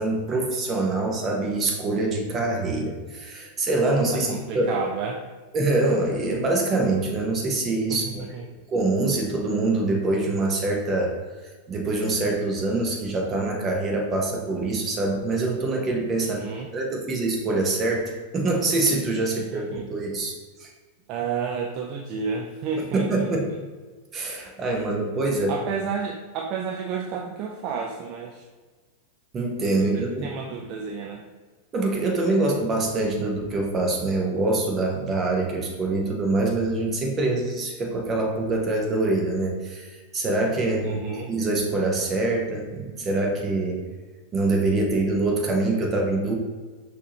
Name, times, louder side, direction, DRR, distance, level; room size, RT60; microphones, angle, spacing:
voice 1, 0.0-4.8 5.5-8.3 8.7-16.4 16.7-20.3 20.6-20.7 22.9-23.5 24.1-25.6 29.3-30.3 31.7-41.0 41.3-43.8 44.3-46.4, right 2 dB, 25° right, 1 dB, 1.0 m, -25 dB
voice 2, 4.1-5.3 7.9-8.0 8.3-8.4 16.2-16.7 19.3-20.3 21.1-23.3 24.7-24.8 25.5-28.4 29.8-31.2 40.8-41.3, right 6 dB, 45° right, 1 dB, 0.4 m, -31 dB
5.9 x 2.8 x 2.9 m, 1.4 s
figure-of-eight pair, 90°, 0 cm